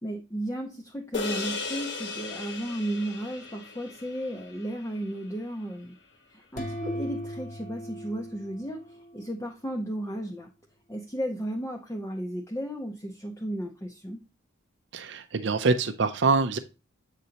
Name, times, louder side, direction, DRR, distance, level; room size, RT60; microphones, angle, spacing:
voice 1, 0.0-6.0 6.3-10.5 10.9-14.2, right 1 dB, 15° left, 0.6 m, -34 dB
sound 1, 1.1-5.7, left 4 dB, 60° left, 1.2 m, -37 dB
sound 2, 6.6-9.3, equal, 40° left, 0.8 m, -38 dB
voice 2, 14.9-16.6, right 4 dB, 60° right, 0.5 m, -25 dB
7.9 x 5.2 x 2.9 m
head